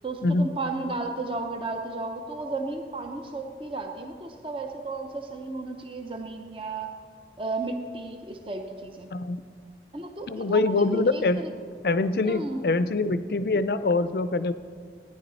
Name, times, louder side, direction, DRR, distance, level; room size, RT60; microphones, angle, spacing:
voice 1, 0.0-6.9 7.4-9.1 9.9-11.5 12.2-12.6, right 2 dB, 30° right, 4 dB, 0.8 m, -33 dB
voice 2, 9.1-9.4 10.3-11.4 11.8-14.5, left 3 dB, 60° left, 13 dB, 0.4 m, -24 dB
16.5 x 10.0 x 4.1 m, 2.1 s
head